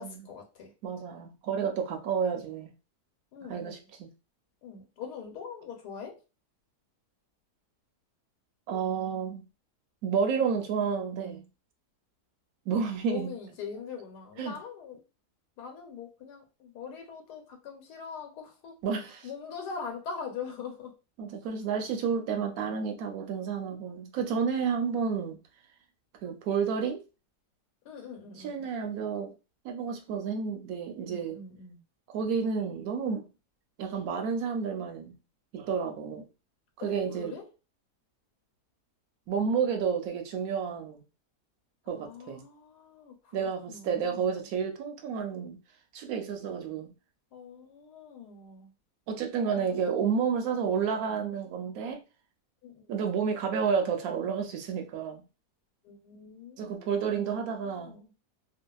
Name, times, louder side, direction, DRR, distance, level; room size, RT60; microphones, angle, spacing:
voice 1, 0.0-0.7 3.3-3.8 4.6-6.2 12.7-15.0 15.6-18.8 19.2-20.9 27.8-28.6 31.0-31.8 36.8-37.4 41.9-44.5 47.3-48.7 49.5-49.8 52.6-52.9 55.8-57.1 57.6-58.2, left 6 dB, 90° left, 1.2 m, -43 dB
voice 2, 0.8-2.7 3.5-4.1 8.7-9.4 10.0-11.4 12.7-13.3 14.4-14.6 18.8-19.3 21.2-25.4 26.2-27.0 28.4-29.3 29.6-31.4 32.1-33.3 33.8-35.2 35.5-36.3 36.8-37.4 39.3-41.0 41.9-42.4 43.3-45.6 45.9-46.9 49.1-52.0 52.9-55.2 56.6-58.0, right 6 dB, 70° right, 1.0 m, -30 dB
2.7 x 2.3 x 2.2 m
omnidirectional pair, 1.7 m